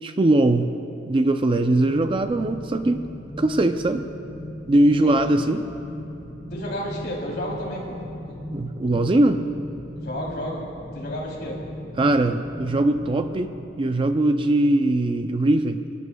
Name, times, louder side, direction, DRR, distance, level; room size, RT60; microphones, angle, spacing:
voice 1, 0.0-0.7 1.1-3.0 3.4-4.0 4.7-5.6 8.5-9.4 12.0-15.8, right 2 dB, 25° right, 8 dB, 0.4 m, -21 dB
sound 1, 1.8-13.5, left 1 dB, 20° left, 1.7 m, -37 dB
voice 2, 4.8-5.3 6.5-8.0 8.3-8.4 10.0-11.6, equal, 60° left, -3 dB, 3.2 m, -32 dB
28.0 x 12.0 x 2.3 m, 2.9 s
head